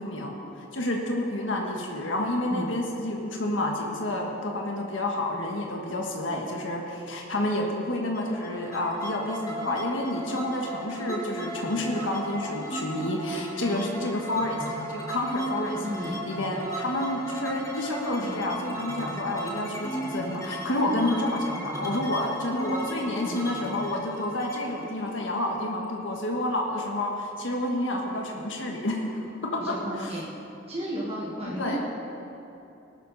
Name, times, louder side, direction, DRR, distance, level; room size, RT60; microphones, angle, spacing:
voice 1, 0.0-29.0 29.4-30.2 31.6-31.8, left 1 dB, 75° left, 0 dB, 1.6 m, -29 dB
sound 1, 8.1-25.8, right 1 dB, 20° left, 1.8 m, -36 dB
voice 2, 15.8-16.2 29.6-30.3 30.7-31.8, equal, 35° right, -5 dB, 1.6 m, -33 dB
19.0 x 12.0 x 4.2 m, 2.8 s
head